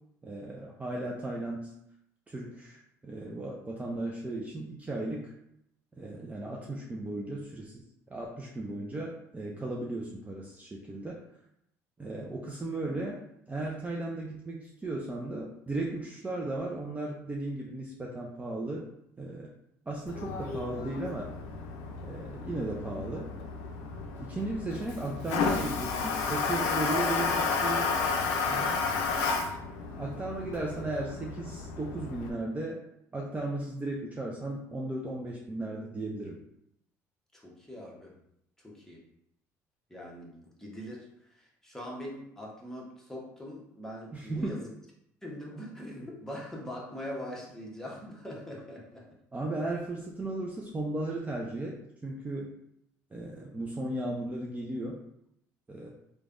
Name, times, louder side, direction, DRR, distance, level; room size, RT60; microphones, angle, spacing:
voice 1, 0.2-1.7 2.3-5.3 6.0-7.8 8.1-11.2 12.0-13.2 13.5-18.9 19.2-19.5 19.9-21.3 22.0-23.3 24.2-27.9 28.4-28.9 30.0-32.8 33.1-36.4 44.1-44.6 49.3-51.8 52.0-52.5 53.1-55.0 55.7-55.9, right 2 dB, 20° right, -2 dB, 0.5 m, -36 dB
Toilet flush, 20.1-32.3, left 4 dB, 85° left, 0.4 m, -32 dB
voice 2, 37.3-38.2 38.6-39.0 39.9-41.1 41.3-44.7 45.2-49.1, equal, 5° left, -3 dB, 1.0 m, -42 dB
3.2 x 2.2 x 2.5 m, 0.77 s
supercardioid pair, 75°, 8 cm